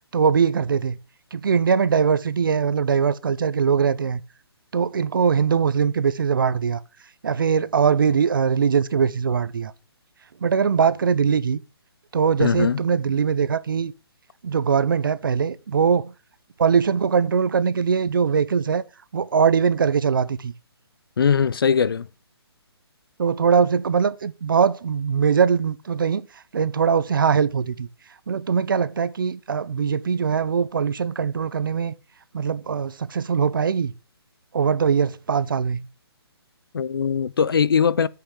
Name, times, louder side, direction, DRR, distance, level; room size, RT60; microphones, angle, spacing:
voice 1, 0.1-1.0 1.3-4.2 4.7-6.8 7.2-9.7 10.4-11.6 12.1-13.9 14.4-16.1 16.6-18.8 19.1-20.5 23.2-26.3 26.5-27.9 28.3-31.9 32.3-33.9 34.5-35.9, right 6 dB, 55° right, 0.7 m, -21 dB
voice 2, 12.4-12.8 21.2-22.1 36.7-38.1, left 6 dB, 60° left, 0.6 m, -20 dB
8.7 x 5.8 x 6.4 m
hypercardioid pair, 175°, 14 cm